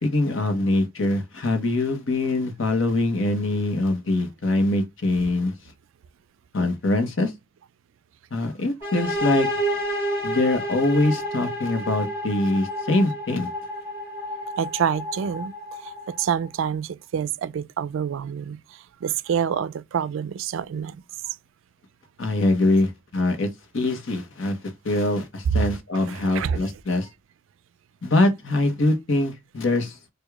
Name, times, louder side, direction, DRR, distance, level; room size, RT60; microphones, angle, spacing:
voice 1, 0.0-5.5 6.5-7.3 8.3-9.5 10.2-13.5 22.2-24.6 24.8-27.1 28.0-30.1, left 2 dB, 65° left, 0.8 m, -23 dB
sound 1, 8.8-16.5, equal, 10° right, 2.2 m, -30 dB
voice 2, 14.6-15.5 15.8-21.4 26.0-26.6, right 8 dB, 70° right, 0.3 m, -27 dB
4.7 x 2.2 x 2.2 m
head